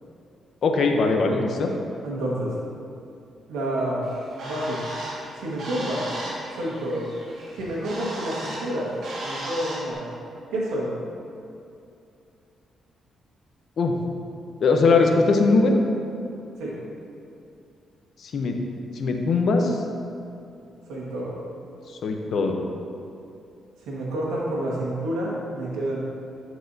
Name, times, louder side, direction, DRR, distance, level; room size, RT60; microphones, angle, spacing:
voice 1, 0.6-1.7 13.8-13.9 14.6-15.8 18.2-18.6 18.9-19.8 21.9-22.6, left 3 dB, 65° left, 3 dB, 0.8 m, -21 dB
voice 2, 2.0-2.5 3.5-4.0 4.4-4.8 5.4-6.1 6.5-7.1 7.5-8.9 9.2-10.1 10.5-10.9 16.5-16.8 20.9-21.4 23.9-26.0, right 1 dB, 90° right, -5 dB, 1.6 m, -29 dB
Bird, 4.0-9.9, right 1 dB, 70° right, 1.7 m, -36 dB
11.5 x 4.7 x 2.8 m, 2.6 s
cardioid pair, 70°, 0 cm